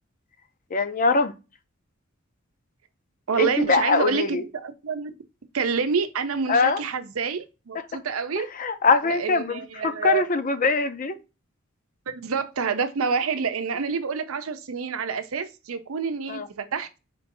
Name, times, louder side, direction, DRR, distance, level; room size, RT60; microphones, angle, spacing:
voice 1, 0.7-1.3 3.4-4.4 6.5-6.8 8.6-11.2 16.3-16.5, left 4 dB, 40° left, 0.6 m, -22 dB
voice 2, 3.3-5.1 5.5-8.5 9.0-10.2 12.1-17.0, right 5 dB, 90° right, 0.6 m, -27 dB
4.5 x 2.6 x 3.9 m
head